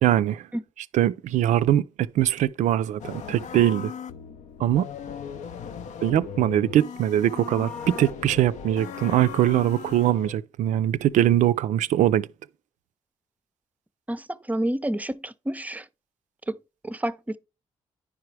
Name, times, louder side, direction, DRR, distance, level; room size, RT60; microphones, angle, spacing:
voice 1, 0.0-0.5 0.9-3.9 4.6-4.9 6.0-12.3, right 12 dB, 70° right, 0.4 m, -22 dB
sound 1, 3.0-10.3, left 7 dB, 70° left, 0.5 m, -38 dB
voice 2, 14.1-15.9 16.5-16.6 16.8-17.4, right 1 dB, 10° right, 0.5 m, -29 dB
10.0 x 4.8 x 3.2 m
supercardioid pair, 50°, 13 cm